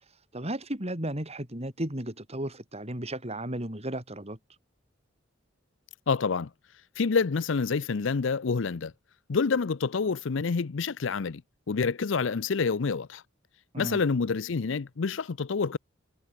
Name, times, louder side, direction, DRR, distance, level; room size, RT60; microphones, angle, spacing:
voice 1, 0.3-4.4 13.7-14.0, right 1 dB, 35° right, 6.6 m, -34 dB
voice 2, 6.1-6.5 7.0-8.9 9.3-11.4 11.7-13.2 13.8-15.8, left 5 dB, 70° left, 0.6 m, -27 dB
head